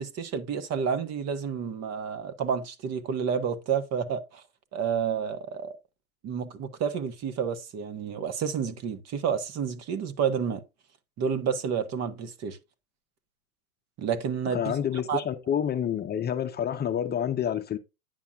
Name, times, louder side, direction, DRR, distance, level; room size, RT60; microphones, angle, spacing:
voice 1, 0.0-4.4 4.7-5.7 6.2-10.6 11.2-12.6 14.0-14.8 15.1-15.2, right 7 dB, 35° right, 1.4 m, -30 dB
voice 2, 14.5-17.8, left 9 dB, 20° left, 0.8 m, -28 dB
9.5 x 7.1 x 2.4 m
hypercardioid pair, 100°, 43 cm